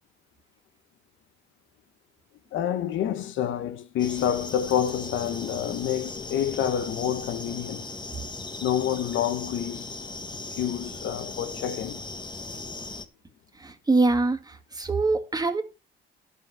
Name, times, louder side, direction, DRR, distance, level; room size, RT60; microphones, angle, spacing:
voice 1, 2.5-7.8 8.6-10.0 10.6-12.1, left 10 dB, 80° left, 0.8 m, -28 dB
sound 1, 4.0-13.1, left 3 dB, 20° left, 1.4 m, -38 dB
voice 2, 13.6-15.6, right 3 dB, 20° right, 1.8 m, -24 dB
11.0 x 5.5 x 5.9 m
cardioid pair, 90°, 20 cm